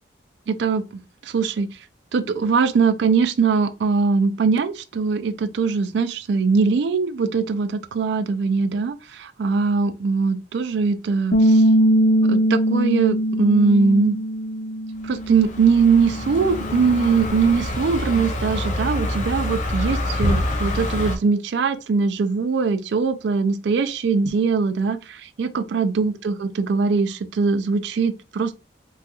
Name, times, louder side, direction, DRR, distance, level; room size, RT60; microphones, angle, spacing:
voice 1, 0.5-0.8 1.3-1.7 2.1-11.4 12.3-14.2 15.0-25.0 25.4-28.5, right 5 dB, 65° right, 0.3 m, -21 dB
Bass guitar, 11.3-17.6, right 1 dB, 85° left, 0.7 m, -21 dB
Car passing by, 15.1-21.2, left 1 dB, 40° left, 0.4 m, -26 dB
4.0 x 2.3 x 2.3 m
head